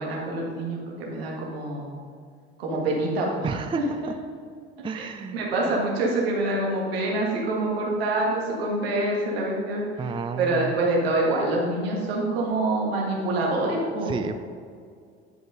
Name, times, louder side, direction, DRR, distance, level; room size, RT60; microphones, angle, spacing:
voice 1, 0.0-1.9 2.6-3.8 4.9-5.1 5.3-9.8 10.4-14.1, right 2 dB, 80° right, -2 dB, 1.8 m, -26 dB
voice 2, 3.4-3.8 4.8-5.7 10.0-10.7 14.0-14.4, right 5 dB, 15° right, 8 dB, 0.5 m, -31 dB
10.5 x 5.2 x 3.8 m, 2.2 s
hypercardioid pair, 60°, 30 cm